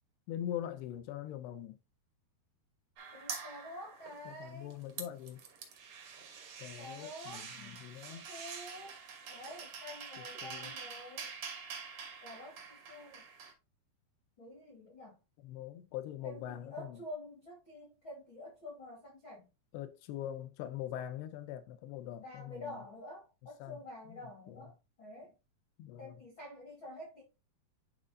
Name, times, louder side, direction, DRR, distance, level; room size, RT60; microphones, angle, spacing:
voice 1, 0.3-1.8 4.3-5.4 6.6-8.3 10.2-10.7 15.4-17.0 19.7-22.8 23.6-23.8 24.1-24.2 24.5-24.7 25.8-26.2, left 11 dB, 85° left, 2.7 m, -43 dB
sound 1, 3.0-4.4 4.7-13.5, right 6 dB, 75° right, 1.3 m, -46 dB
voice 2, 3.1-4.7 6.8-7.8 8.1-9.0 9.3-11.3 12.2-13.3 14.4-15.2 16.2-19.5 22.2-25.3 26.0-27.2, left 1 dB, 55° left, 1.3 m, -48 dB
11.0 x 3.7 x 2.6 m
omnidirectional pair, 4.5 m